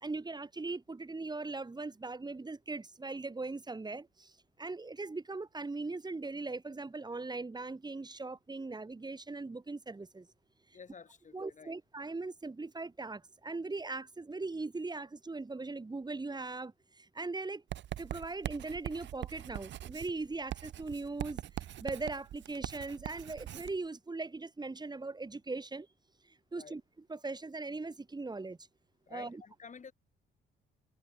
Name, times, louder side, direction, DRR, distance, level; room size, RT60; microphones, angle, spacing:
voice 1, 0.0-4.3 4.6-10.3 11.3-17.6 18.0-25.9 26.2-26.8 27.1-28.6 29.1-29.4, right 3 dB, 20° right, 3.4 m, -40 dB
voice 2, 10.7-11.7 26.5-26.8 29.1-29.9, left 5 dB, 40° left, 3.3 m, -51 dB
Writing, 17.7-23.8, right 12 dB, 65° right, 0.9 m, -42 dB
cardioid pair, 90°, 20 cm